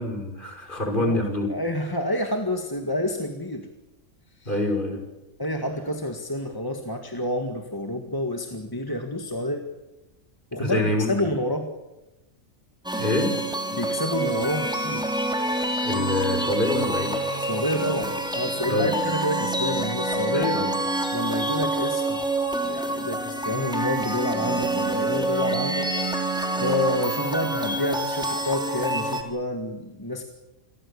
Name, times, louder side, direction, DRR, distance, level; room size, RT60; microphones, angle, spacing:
voice 1, 0.0-1.5 4.5-5.0 10.6-11.3 13.0-13.4 15.8-17.5 18.7-18.9 20.3-20.7, left 1 dB, 35° left, 3 dB, 5.4 m, -26 dB
voice 2, 1.5-3.7 4.4-4.5 5.4-9.6 10.5-11.7 13.7-15.1 17.4-20.6 21.1-22.2 22.6-26.2 26.6-30.2, left 1 dB, 15° left, 4 dB, 1.9 m, -28 dB
sound 1, 12.8-29.2, right 1 dB, 5° right, 3.4 m, -27 dB
28.5 x 22.0 x 7.1 m, 1.0 s
omnidirectional pair, 1.4 m